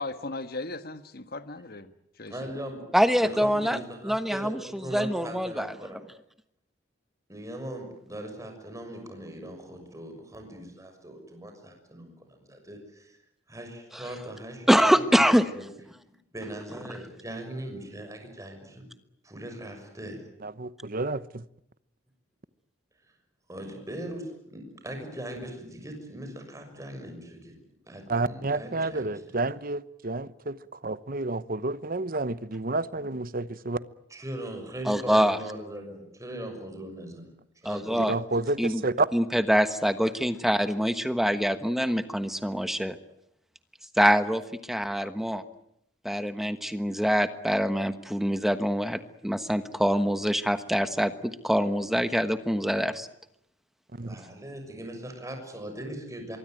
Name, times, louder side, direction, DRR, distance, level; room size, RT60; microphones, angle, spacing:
voice 1, 0.0-1.9 2.2-2.5, left 2 dB, 55° left, 1.6 m, -37 dB
voice 2, 2.3-2.8 3.2-6.0 7.3-13.2 13.5-15.2 15.5-15.6 16.3-18.8 19.2-20.2 23.5-27.5 27.9-29.1 34.1-37.3 37.6-38.1 54.0-56.4, right 1 dB, 20° right, 6.6 m, -40 dB
voice 3, 2.9-4.6 4.9-5.7 13.9-14.0 14.7-15.4 34.9-35.4 37.6-38.1 38.6-38.8 39.1-43.0 44.0-44.4 44.7-45.4 46.0-53.1, equal, ahead, 1.3 m, -25 dB
voice 4, 20.4-21.4 28.1-30.6 30.8-33.8 38.0-39.1 54.0-54.1, right 2 dB, 50° right, 1.0 m, -30 dB
24.5 x 23.0 x 9.2 m
head